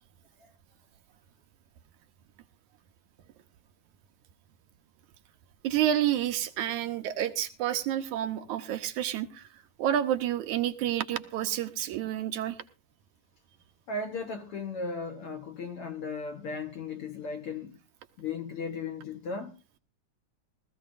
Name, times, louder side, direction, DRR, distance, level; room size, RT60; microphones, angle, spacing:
voice 1, 5.6-12.6, right 11 dB, 75° right, 2.1 m, -29 dB
voice 2, 13.9-17.8 18.2-19.6, left 4 dB, 55° left, 1.7 m, -36 dB
19.0 x 14.5 x 2.5 m
omnidirectional pair, 3.7 m